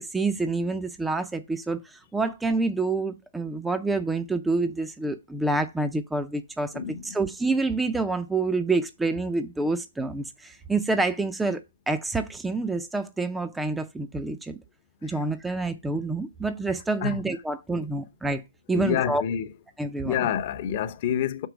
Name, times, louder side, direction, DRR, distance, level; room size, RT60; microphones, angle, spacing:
voice 1, 0.0-11.6 11.9-14.6 15.0-18.4 18.7-19.2 19.8-20.3, right 3 dB, 5° right, 0.4 m, -27 dB
voice 2, 6.7-7.2 15.0-15.2 17.0-17.2 18.7-19.5 20.0-21.5, left 9 dB, 35° left, 0.7 m, -28 dB
5.9 x 4.6 x 5.0 m
hypercardioid pair, 155°, 0 cm